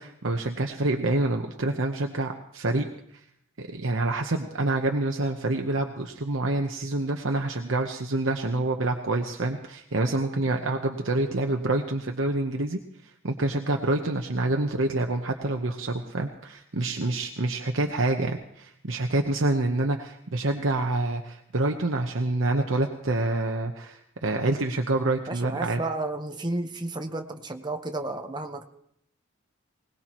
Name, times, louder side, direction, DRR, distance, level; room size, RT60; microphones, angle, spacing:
voice 1, 0.0-2.8 3.6-25.8, right 2 dB, 65° right, 3 dB, 1.0 m, -27 dB
voice 2, 25.3-28.6, right 2 dB, 20° right, 5 dB, 1.0 m, -32 dB
21.0 x 19.0 x 3.0 m, 0.72 s
head